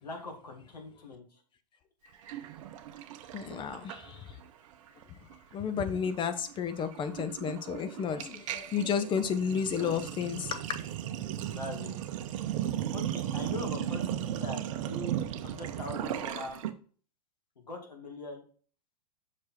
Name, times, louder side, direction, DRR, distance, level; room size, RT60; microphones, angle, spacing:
voice 1, 0.0-1.2 11.5-11.9 12.9-16.6 17.6-18.4, left 2 dB, 85° left, 2 dB, 2.1 m, -42 dB
Sink (filling or washing), 2.3-4.5 4.7-5.0 5.3-16.7, right 11 dB, 55° right, 0.8 m, -36 dB
voice 2, 3.3-4.4 5.1-5.2 5.5-10.8, left 7 dB, 25° left, 10 dB, 0.8 m, -32 dB
6.3 x 4.7 x 4.2 m, 0.42 s
hypercardioid pair, 105°, 20 cm